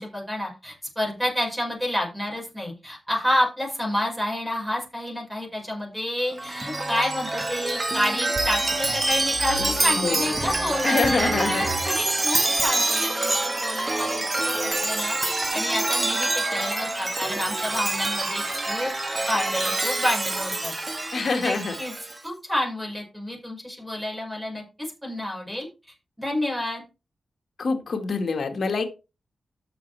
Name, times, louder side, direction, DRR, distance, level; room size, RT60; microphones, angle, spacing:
voice 1, 0.0-12.0 12.2-18.9 19.3-20.7 21.1-21.9 22.2-25.7 26.2-26.8, left 1 dB, 5° right, -2 dB, 5.2 m, -29 dB
Chime, 6.3-22.2, right 2 dB, 30° right, 1.6 m, -26 dB
voice 2, 9.9-10.5 10.8-11.7 21.1-21.8 27.6-28.8, left 4 dB, 60° left, 5 dB, 1.8 m, -25 dB
13.5 x 6.4 x 3.4 m, 0.29 s
wide cardioid pair, 95°, 0 cm